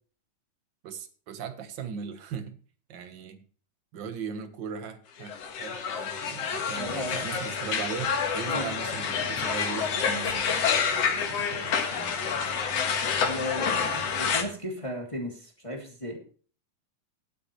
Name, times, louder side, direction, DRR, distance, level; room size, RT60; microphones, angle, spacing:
voice 1, 0.8-2.6 2.9-3.4 3.9-12.8 13.6-14.1, right 6 dB, 50° right, 8 dB, 1.4 m, -39 dB
sound 1, 5.2-14.4, left 6 dB, 55° left, 2.4 m, -28 dB
voice 2, 6.8-7.3 8.5-8.7 13.2-16.2, left 1 dB, 10° left, 0 dB, 2.3 m, -35 dB
18.0 x 8.6 x 3.2 m, 0.42 s
omnidirectional pair, 3.6 m